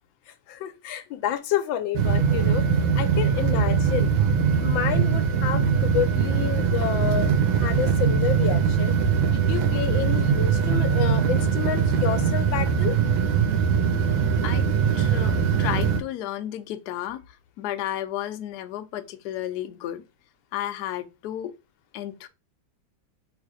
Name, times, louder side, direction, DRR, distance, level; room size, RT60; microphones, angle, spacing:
voice 1, 0.3-4.1 4.6-9.0 9.3-13.0, left 10 dB, 85° left, 1.4 m, -29 dB
sound 1, 2.0-16.0, right 6 dB, 85° right, 1.4 m, -22 dB
voice 2, 14.9-20.0 20.5-21.5 21.9-22.3, left 12 dB, 70° left, 1.0 m, -33 dB
3.3 x 3.2 x 4.8 m
omnidirectional pair, 2.1 m